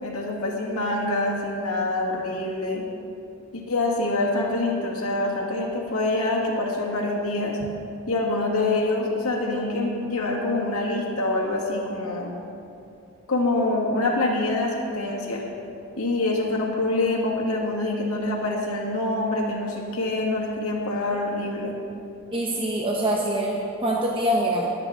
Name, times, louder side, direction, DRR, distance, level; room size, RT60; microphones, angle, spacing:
voice 1, 0.0-2.8 3.5-7.6 8.1-12.3 13.3-15.4 16.0-21.8, left 2 dB, 80° left, -2 dB, 2.0 m, -25 dB
voice 2, 22.3-24.7, right 1 dB, 25° right, -2 dB, 0.9 m, -24 dB
21.5 x 7.7 x 3.7 m, 2.6 s
head